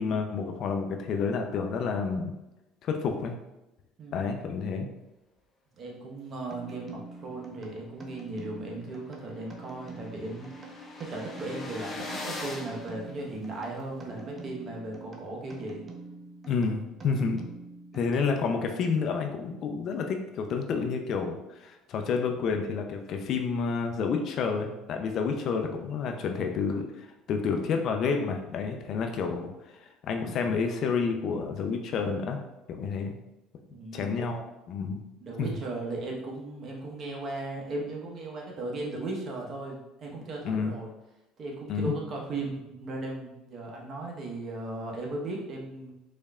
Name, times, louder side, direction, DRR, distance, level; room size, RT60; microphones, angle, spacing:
voice 1, 0.0-2.3 2.8-3.4 4.1-4.9 16.5-17.4 17.9-29.5 30.1-32.4 32.7-33.1 33.9-35.0 35.4-35.5 40.4-40.7 41.7-41.9, left 5 dB, 55° left, 4 dB, 0.5 m, -29 dB
voice 2, 5.8-10.5 11.0-15.8 33.7-34.3 35.2-40.9 41.4-45.9, right 2 dB, 45° right, -1 dB, 1.1 m, -37 dB
sound 1, 6.5-18.7, right 4 dB, 30° right, 0.7 m, -46 dB
sound 2, 8.2-8.3 8.7-8.8 8.9-13.8, left 2 dB, 35° left, 1.1 m, -41 dB
4.2 x 3.3 x 2.4 m, 0.96 s
supercardioid pair, 95°, 0 cm